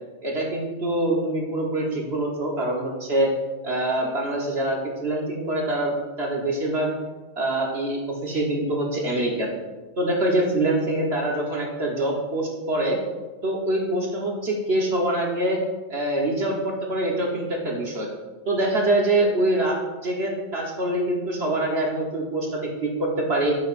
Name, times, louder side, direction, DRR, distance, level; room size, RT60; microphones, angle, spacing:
voice 1, 0.2-3.3 3.6-6.9 7.4-9.5 10.0-13.0 13.4-15.6 15.9-18.1 18.4-23.5, right 1 dB, 55° right, -2 dB, 1.5 m, -25 dB
14.0 x 5.9 x 2.6 m, 1.3 s
omnidirectional pair, 1.3 m